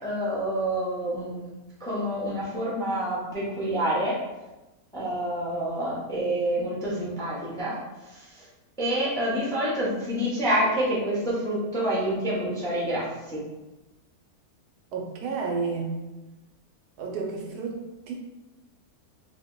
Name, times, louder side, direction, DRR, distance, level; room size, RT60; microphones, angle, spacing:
voice 1, 0.0-1.4 1.8-4.2 4.9-7.8 8.0-8.4 8.8-13.4, right 1 dB, 5° left, -6 dB, 0.3 m, -27 dB
voice 2, 14.9-16.0 17.0-18.1, right 4 dB, 90° right, 0 dB, 1.2 m, -31 dB
2.8 x 2.1 x 3.6 m, 1.1 s
omnidirectional pair, 1.6 m